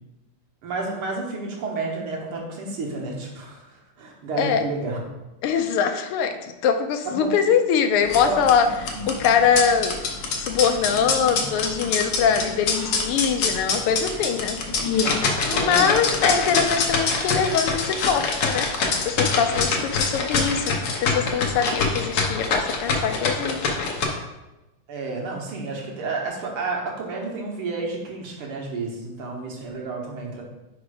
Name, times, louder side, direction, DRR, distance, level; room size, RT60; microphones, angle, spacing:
voice 1, 0.6-5.0 7.1-7.3 8.2-8.4 15.5-15.9 24.9-30.4, right 3 dB, 75° right, -1 dB, 2.1 m, -30 dB
voice 2, 5.4-8.7 9.1-10.0 10.4-14.6 15.0-15.2 15.5-18.7 19.0-23.8, left 7 dB, 85° left, 6 dB, 1.6 m, -23 dB
sound 1, 8.0-24.0, left 4 dB, 60° left, 1.4 m, -25 dB
5.0 x 4.9 x 4.9 m, 1.0 s
omnidirectional pair, 2.4 m